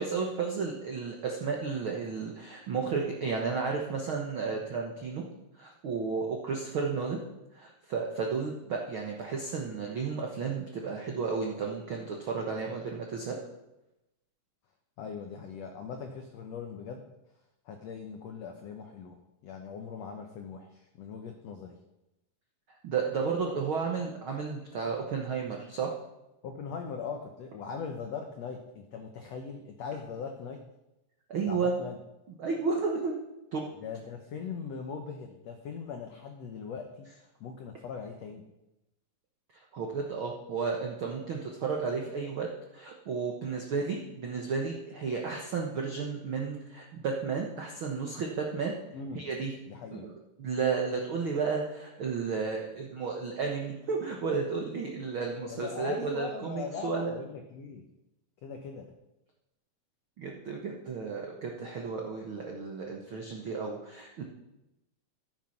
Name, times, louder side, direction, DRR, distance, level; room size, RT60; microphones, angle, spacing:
voice 1, 0.0-5.2 5.5-7.2 7.5-13.4 22.8-25.9 31.3-31.7 32.4-33.1 33.5-33.6 39.7-42.5 42.7-48.7 49.1-49.5 50.0-50.1 50.4-57.1 60.2-64.2, right 5 dB, 75° right, 0 dB, 1.1 m, -33 dB
voice 2, 15.0-17.1 17.6-19.1 19.4-21.7 26.4-30.6 31.5-32.0 33.8-38.4 48.9-49.3 49.7-50.1 55.5-57.9 58.4-58.9, left 5 dB, 90° left, 4 dB, 1.4 m, -40 dB
13.5 x 8.2 x 5.9 m, 0.94 s
omnidirectional pair, 4.3 m